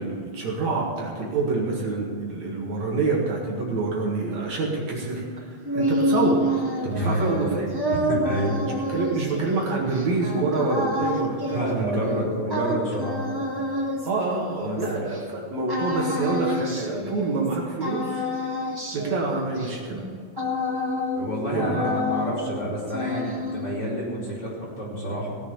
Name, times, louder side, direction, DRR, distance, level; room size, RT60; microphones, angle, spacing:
voice 1, 0.0-5.2 5.7-6.4 6.8-7.7 8.9-12.1 12.4-12.5 14.0-18.2 18.9-20.1 21.5-21.8, right 3 dB, 60° right, -2 dB, 3.0 m, -27 dB
sound 1, 5.4-15.2 15.7-17.6 17.8-21.3 21.6-22.6 22.9-23.9, equal, 20° right, 0.5 m, -28 dB
voice 2, 6.8-7.3 8.1-8.6 11.5-13.2 14.6-15.0 21.1-25.4, equal, 30° left, -6 dB, 4.9 m, -28 dB
17.5 x 7.2 x 8.4 m, 2.1 s
omnidirectional pair, 3.7 m